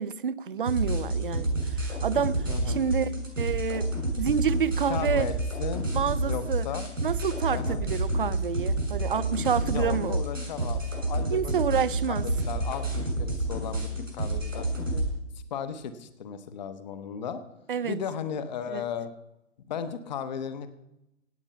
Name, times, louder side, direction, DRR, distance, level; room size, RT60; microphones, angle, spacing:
voice 1, 0.0-3.1 3.4-3.9 4.2-5.3 5.9-6.7 7.0-10.2 11.3-12.3 17.7-18.0 18.7-18.8, right 7 dB, 45° right, 17 dB, 0.6 m, -28 dB
sound 1, 0.7-15.1, right 1 dB, 80° right, 6.9 m, -29 dB
voice 2, 2.5-2.8 4.9-5.3 5.6-5.9 6.2-6.9 7.5-7.8 9.6-11.7 12.1-15.0 15.3-17.4 17.8-19.1 19.7-20.7, left 7 dB, 35° left, 11 dB, 1.0 m, -35 dB
17.0 x 8.9 x 5.6 m, 0.89 s
figure-of-eight pair, 130°, 38 cm